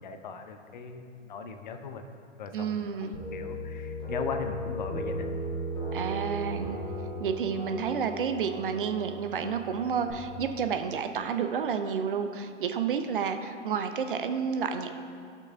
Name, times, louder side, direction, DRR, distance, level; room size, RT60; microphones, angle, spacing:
voice 1, 0.0-2.0 2.4-5.3 5.9-6.1, left 4 dB, 40° left, 7 dB, 0.6 m, -38 dB
voice 2, 2.5-3.2 5.9-6.8 7.2-15.0, right 6 dB, 45° right, 7 dB, 0.5 m, -30 dB
sound 1, 3.1-10.1, right 1 dB, 10° left, 1.3 m, -36 dB
16.0 x 5.9 x 2.3 m, 2.3 s
figure-of-eight pair, 115°, 37 cm